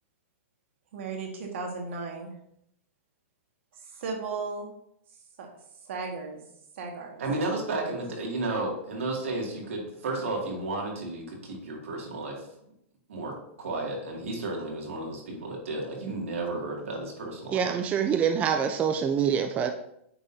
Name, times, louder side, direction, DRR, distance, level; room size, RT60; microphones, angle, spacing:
voice 1, 0.9-2.3 3.7-4.7 5.4-5.5 5.8-6.4 6.7-7.2, right 4 dB, 65° right, 1 dB, 1.7 m, -35 dB
voice 2, 7.2-12.4 13.1-17.7, right 2 dB, 80° right, -1 dB, 2.3 m, -33 dB
voice 3, 17.5-19.7, right 7 dB, 20° right, 6 dB, 0.4 m, -25 dB
8.8 x 4.0 x 2.7 m, 0.75 s
hypercardioid pair, 140°, 7 cm